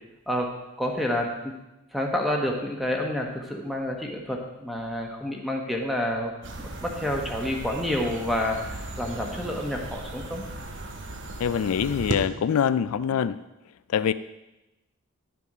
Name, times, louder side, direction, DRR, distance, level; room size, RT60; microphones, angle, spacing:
voice 1, 0.3-1.6 1.9-6.3 6.8-10.4, left 1 dB, ahead, 1 dB, 1.2 m, -29 dB
sound 1, 6.4-12.1, right 2 dB, 55° right, 1.0 m, -36 dB
voice 2, 11.4-13.4 13.9-14.1, left 7 dB, 75° left, 14 dB, 0.4 m, -24 dB
11.5 x 7.0 x 4.9 m, 0.97 s
head